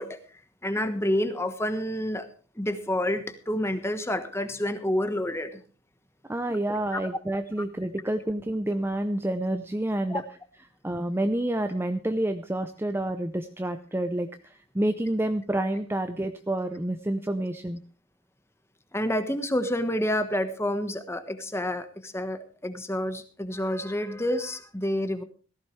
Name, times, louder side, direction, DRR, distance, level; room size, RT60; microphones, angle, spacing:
voice 1, 0.0-2.3 2.5-5.6 6.5-6.6 6.9-7.0 10.1-10.2 18.9-25.2, left 1 dB, 15° left, 10 dB, 1.3 m, -29 dB
voice 2, 6.3-10.2 10.8-17.8, right 1 dB, 10° right, 8 dB, 0.6 m, -28 dB
17.5 x 14.5 x 3.3 m, 0.38 s
head